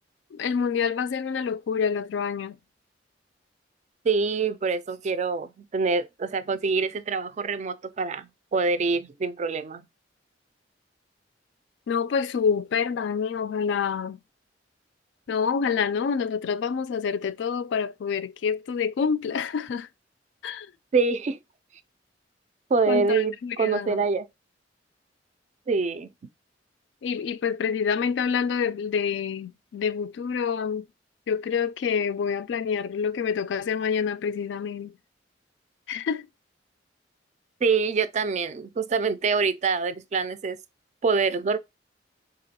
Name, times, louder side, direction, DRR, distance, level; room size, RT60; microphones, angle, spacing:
voice 1, 0.3-2.5 11.9-14.2 15.3-19.9 20.4-20.7 22.9-24.0 27.0-30.9 31.3-35.0 35.9-36.3, left 6 dB, 75° left, 0.3 m, -27 dB
voice 2, 4.0-9.8 20.9-21.4 22.7-24.3 25.7-26.1 37.6-40.6 41.0-41.6, right 4 dB, 40° right, 0.3 m, -25 dB
3.8 x 2.9 x 2.8 m
head